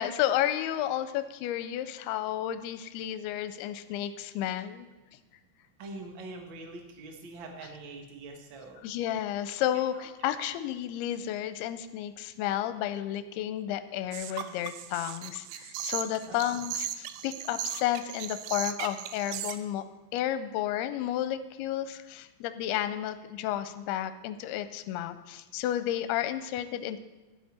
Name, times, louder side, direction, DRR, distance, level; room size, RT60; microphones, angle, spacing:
voice 1, 0.0-4.9 8.8-19.8 20.1-27.0, left 12 dB, 85° left, 11 dB, 2.5 m, -32 dB
voice 2, 5.8-8.8 10.2-10.3 16.3-16.6, right 2 dB, 65° right, 3 dB, 1.2 m, -44 dB
sound 1, 14.1-19.6, right 12 dB, 85° right, 2.1 m, -37 dB
12.0 x 10.5 x 4.3 m, 1.2 s
omnidirectional pair, 4.7 m